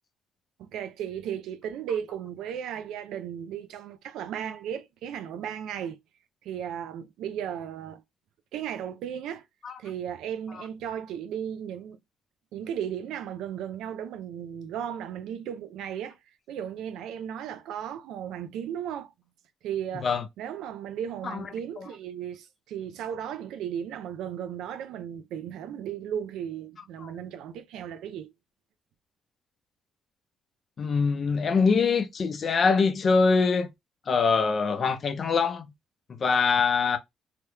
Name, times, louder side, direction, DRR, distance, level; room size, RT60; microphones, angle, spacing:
voice 1, 0.6-6.0 6.4-8.0 8.5-9.4 9.8-12.0 12.5-16.2 16.5-19.1 19.6-20.1 20.4-28.3, right 9 dB, 90° right, 0.5 m, -35 dB
voice 2, 30.8-33.7 34.1-35.7 36.2-37.0, left 5 dB, 50° left, 0.6 m, -23 dB
2.9 x 2.3 x 3.3 m
cardioid pair, 90°, 0 cm